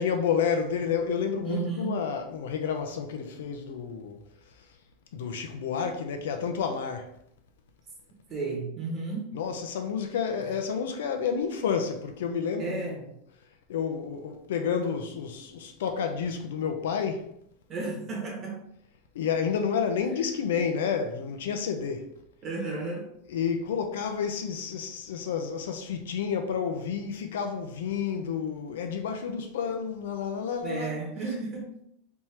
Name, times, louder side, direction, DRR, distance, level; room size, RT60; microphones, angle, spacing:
voice 1, 0.0-4.2 5.1-7.1 9.3-12.9 13.7-17.3 19.1-22.2 23.3-30.9, left 6 dB, 85° left, 0.6 m, -30 dB
voice 2, 1.4-2.0 8.3-9.4 10.4-10.6 12.6-13.1 17.7-18.7 22.4-23.1 30.6-31.8, right 3 dB, 20° right, 1.2 m, -33 dB
3.6 x 3.0 x 4.3 m
supercardioid pair, 170°, 0 cm